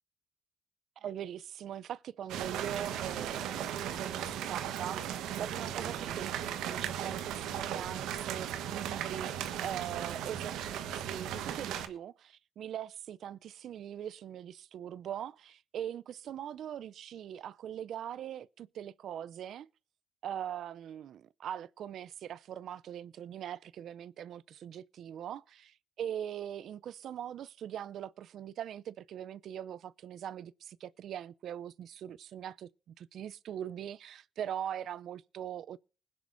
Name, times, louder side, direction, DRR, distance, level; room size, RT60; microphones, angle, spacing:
voice 1, 1.0-19.7 20.2-35.8, right 10 dB, 70° right, 0.5 m, -41 dB
sound 1, 2.3-11.9, right 10 dB, 90° right, 1.2 m, -37 dB
20.5 x 10.5 x 2.6 m
cardioid pair, 90°, 0 cm